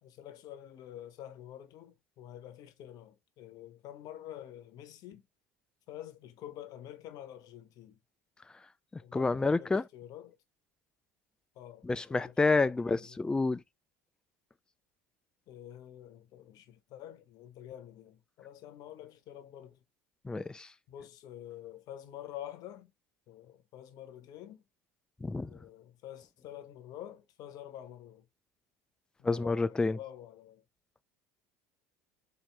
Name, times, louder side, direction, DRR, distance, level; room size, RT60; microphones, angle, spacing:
voice 1, 0.0-5.3 5.9-8.0 9.0-10.4 11.5-13.2 15.5-19.8 20.9-22.9 23.3-24.6 25.5-28.3 29.2-30.6, left 11 dB, 55° left, 0.8 m, -48 dB
voice 2, 8.9-9.8 11.8-13.6 20.2-20.7 25.2-25.5 29.2-30.0, left 3 dB, 10° left, 0.3 m, -29 dB
4.3 x 2.8 x 3.2 m
hypercardioid pair, 75°, 8 cm